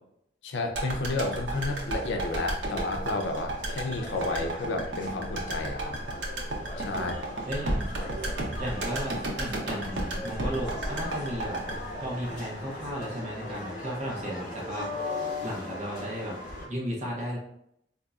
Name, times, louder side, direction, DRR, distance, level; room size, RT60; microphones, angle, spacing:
voice 1, 0.4-5.9 6.8-7.4, left 2 dB, 85° left, 3 dB, 0.6 m, -31 dB
sound 1, 0.7-12.9 13.2-13.3, right 1 dB, 85° right, 0.7 m, -33 dB
sound 2, 1.5-16.7, left 2 dB, 50° left, 0.9 m, -40 dB
voice 2, 7.5-7.9 8.6-11.7 12.0-14.9 15.4-16.4 16.7-17.4, equal, 40° right, -3 dB, 1.0 m, -34 dB
4.0 x 2.8 x 2.4 m, 0.74 s
head